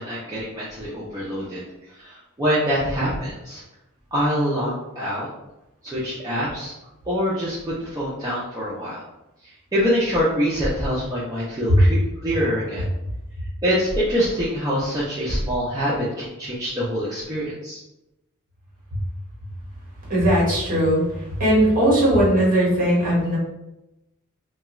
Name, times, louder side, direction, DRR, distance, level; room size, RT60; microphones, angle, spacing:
voice 1, 0.0-1.6 2.0-3.6 4.1-5.3 5.8-6.7 7.1-9.0 9.7-12.8 13.6-17.8, equal, 15° right, -9 dB, 0.5 m, -25 dB
voice 2, 20.1-23.4, equal, 40° right, -6 dB, 1.1 m, -19 dB
2.3 x 2.2 x 3.0 m, 0.92 s
head